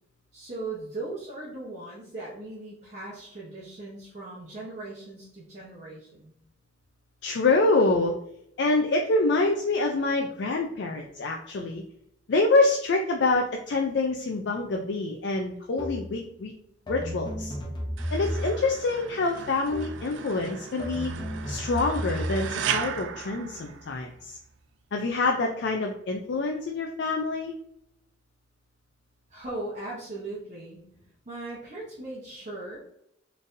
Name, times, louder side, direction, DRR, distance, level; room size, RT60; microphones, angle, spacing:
voice 1, 0.3-6.3 29.3-30.8 31.3-32.8, right 2 dB, 40° right, -7 dB, 0.9 m, -38 dB
voice 2, 7.2-8.2 8.6-11.8 12.3-16.5 16.9-17.5 18.1-21.1 21.5-24.4 24.9-27.5, left 3 dB, 65° left, 2 dB, 0.4 m, -26 dB
sound 1, 15.8-16.2 16.9-18.8 19.7-20.1 20.8-22.5, equal, 25° left, 0.8 m, -33 dB
sound 2, 18.0-24.3, right 8 dB, 65° right, 0.3 m, -36 dB
4.2 x 3.3 x 2.6 m, 0.76 s
head